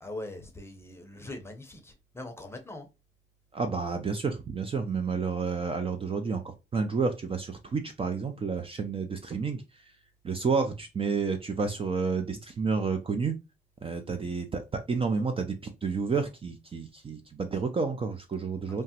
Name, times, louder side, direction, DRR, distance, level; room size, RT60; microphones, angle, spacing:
voice 1, 0.0-2.9 18.7-18.8, left 2 dB, 10° left, 0.7 m, -42 dB
voice 2, 3.5-9.6 10.2-13.3 13.8-18.8, right 5 dB, 30° right, 0.4 m, -30 dB
3.3 x 2.0 x 2.8 m
cardioid pair, 90°, 20 cm